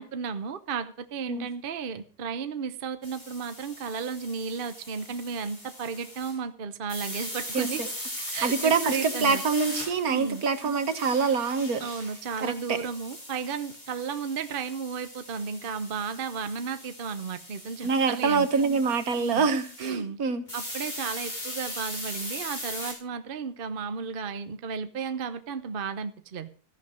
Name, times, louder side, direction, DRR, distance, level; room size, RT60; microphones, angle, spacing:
voice 1, 0.0-7.8 8.3-9.4 10.1-10.4 11.8-18.5 19.2-19.5 19.8-20.2 20.5-26.5, right 5 dB, 40° right, 0.9 m, -34 dB
sound 1, 3.0-6.4 6.9-20.0 20.5-22.9, left 1 dB, 25° left, 5.3 m, -39 dB
voice 2, 7.5-7.9 8.4-11.9 12.4-12.8 17.8-20.4, right 5 dB, 65° right, 1.7 m, -25 dB
14.0 x 11.0 x 5.1 m
omnidirectional pair, 1.7 m